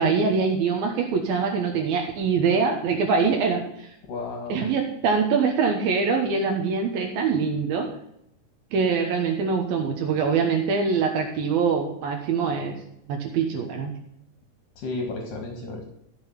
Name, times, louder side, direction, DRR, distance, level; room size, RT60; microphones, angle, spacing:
voice 1, 0.0-3.9 4.5-7.9 8.7-12.8 13.1-13.9, right 5 dB, 80° right, 1 dB, 3.0 m, -24 dB
voice 2, 4.1-4.7 14.8-15.8, left 3 dB, 65° left, 2 dB, 3.3 m, -33 dB
14.5 x 6.3 x 7.3 m, 0.77 s
omnidirectional pair, 4.3 m